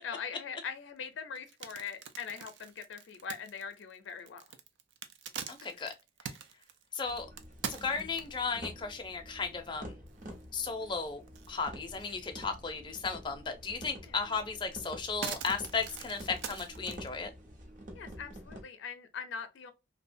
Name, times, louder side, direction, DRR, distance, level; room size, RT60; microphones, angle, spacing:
voice 1, 0.0-4.5 5.7-5.8 14.1-14.2 17.9-19.7, left 6 dB, 90° left, 0.4 m, -42 dB
sound 1, 1.3-8.5 9.1-9.2 9.6-9.7 10.1-10.9 11.3-12.2 12.6-12.7 14.1-14.2 14.6-17.1, right 7 dB, 75° right, 0.4 m, -43 dB
voice 2, 5.5-5.9 6.9-7.3 7.7-9.9 10.5-17.3, left 5 dB, 25° left, 0.4 m, -35 dB
sound 2, 7.1-18.6, equal, 45° right, 0.7 m, -48 dB
2.7 x 2.1 x 2.5 m
head